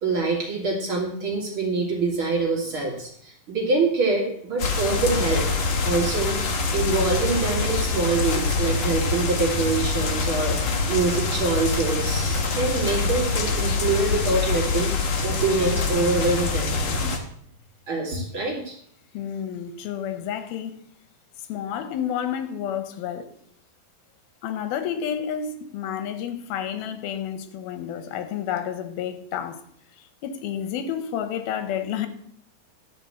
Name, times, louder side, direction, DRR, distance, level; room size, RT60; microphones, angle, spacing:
voice 1, 0.0-5.4 5.8-14.9 15.2-16.7 17.9-18.8, right 3 dB, 40° right, 2.4 m, -25 dB
sound 1, 4.6-17.2, left 4 dB, 55° left, 1.5 m, -25 dB
voice 2, 19.1-20.8 21.5-23.3 24.4-29.6 30.2-32.1, left 9 dB, 85° left, 2.8 m, -30 dB
12.5 x 5.0 x 7.7 m
omnidirectional pair, 4.3 m